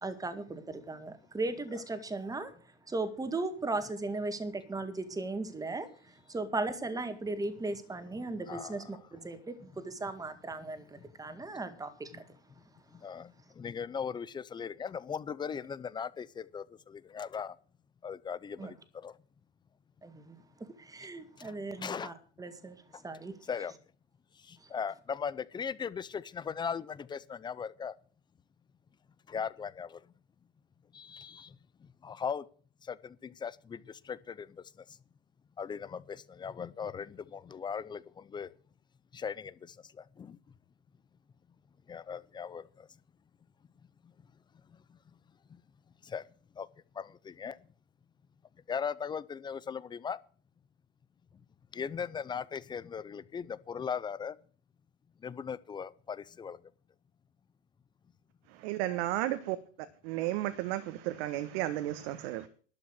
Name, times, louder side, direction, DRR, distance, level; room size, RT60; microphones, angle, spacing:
voice 1, 0.0-2.5 2.9-12.2 18.6-18.7 20.0-20.4 20.8-23.3, right 2 dB, 10° right, 2.0 m, -37 dB
voice 2, 8.5-8.8 13.0-17.5 18.0-18.7 19.0-19.1 21.4-22.1 23.5-23.7 24.5-27.9 29.3-30.0 30.9-31.5 32.0-32.4 32.9-33.8 34.1-34.5 35.6-38.5 39.1-39.5 40.2-40.4 41.9-42.9 46.1-46.2 46.6-46.7 47.0-47.6 48.7-50.2 51.7-54.3 55.2-56.6, left 6 dB, 15° left, 0.5 m, -38 dB
voice 3, 58.5-59.6 60.0-62.5, right 14 dB, 55° right, 1.4 m, -33 dB
12.0 x 8.4 x 7.9 m
hypercardioid pair, 120°, 36 cm